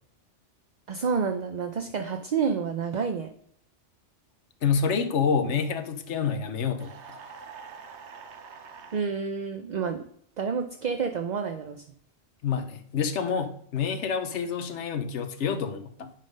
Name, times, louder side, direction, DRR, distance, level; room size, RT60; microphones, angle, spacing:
voice 1, 0.9-3.3 8.9-10.0 10.4-11.8, right 6 dB, 45° right, 6 dB, 0.6 m, -29 dB
voice 2, 4.6-7.2 12.4-16.1, left 6 dB, 75° left, 9 dB, 1.1 m, -28 dB
sound 1, 6.8-9.1, right 5 dB, 70° right, 1.1 m, -45 dB
10.5 x 3.7 x 5.3 m, 0.66 s
omnidirectional pair, 1.2 m